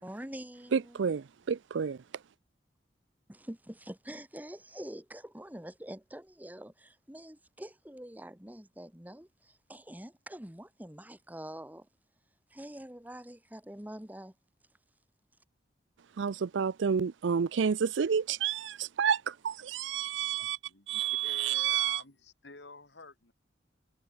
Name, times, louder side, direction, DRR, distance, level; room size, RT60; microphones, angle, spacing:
voice 1, 0.0-1.2 3.3-11.9 12.5-14.3, right 1 dB, 10° right, 1.8 m, -45 dB
voice 2, 0.7-2.0 16.2-20.6 20.9-22.0, right 7 dB, 85° right, 0.5 m, -30 dB
voice 3, 20.7-23.3, left 3 dB, 70° left, 3.5 m, -50 dB
head